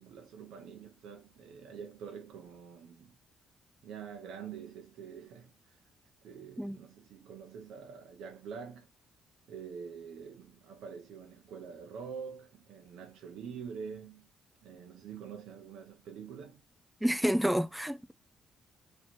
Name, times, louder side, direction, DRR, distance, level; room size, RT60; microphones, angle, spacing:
voice 1, 0.0-3.2 3.8-5.8 6.2-8.9 9.5-14.3 14.6-16.6, right 6 dB, 80° right, 0.8 m, -46 dB
voice 2, 17.0-18.1, equal, 5° right, 0.4 m, -29 dB
3.2 x 2.8 x 4.3 m
cardioid pair, 90°, 0 cm